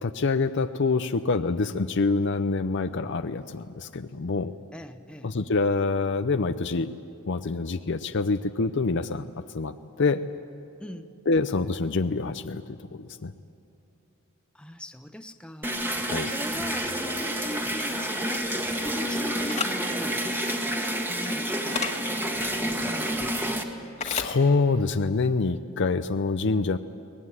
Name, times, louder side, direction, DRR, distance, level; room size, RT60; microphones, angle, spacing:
voice 1, 0.0-4.6 5.2-6.9 7.3-9.3 9.5-10.2 11.3-13.3 16.1-16.3 22.3-22.7 24.0-26.8, left 3 dB, 60° left, 9 dB, 0.6 m, -26 dB
voice 2, 4.7-5.3 10.8-11.1 14.5-15.8 16.2-20.3 21.1-21.9 22.5-23.5, equal, 5° left, 7 dB, 0.7 m, -40 dB
sound 1, 15.6-23.6, right 1 dB, 10° right, 1.5 m, -29 dB
sound 2, 19.5-19.7 21.7-21.9 24.0-24.3, left 5 dB, 35° left, 1.7 m, -29 dB
22.5 x 19.5 x 9.7 m, 2.6 s
head